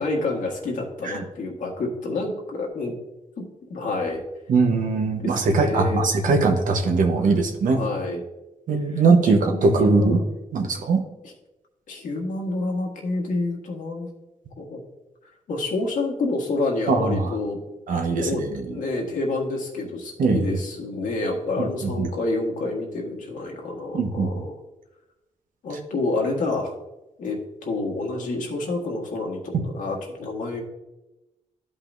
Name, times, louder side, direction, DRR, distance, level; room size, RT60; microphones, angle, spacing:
voice 1, 0.0-3.0 3.7-4.2 5.2-6.1 7.7-8.2 8.9-10.2 11.2-11.3 11.9-14.1 14.6-14.8 15.5-17.6 18.2-18.4 18.7-24.6 25.6-26.7 27.2-27.4 27.6-30.6, left 2 dB, 90° left, 0 dB, 1.6 m, -28 dB
voice 2, 4.5-7.8 8.7-10.2 10.5-11.0 16.9-17.3 17.9-18.3 20.2-20.4 21.6-21.7 22.0-22.1 23.9-24.3, right 3 dB, 85° right, 4 dB, 1.1 m, -20 dB
12.0 x 5.4 x 2.7 m, 0.98 s
cardioid pair, 80°, 13 cm